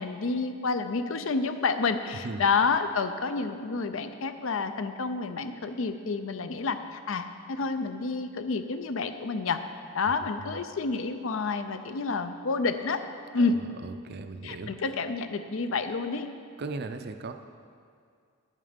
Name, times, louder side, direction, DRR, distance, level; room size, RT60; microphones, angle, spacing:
voice 1, 0.0-9.6 9.9-13.0 13.3-13.6 14.4-16.3, left 4 dB, 65° left, 9 dB, 0.5 m, -29 dB
voice 2, 13.8-14.7 16.6-17.3, right 3 dB, 50° right, 8 dB, 0.5 m, -37 dB
9.4 x 7.4 x 5.1 m, 2.2 s
head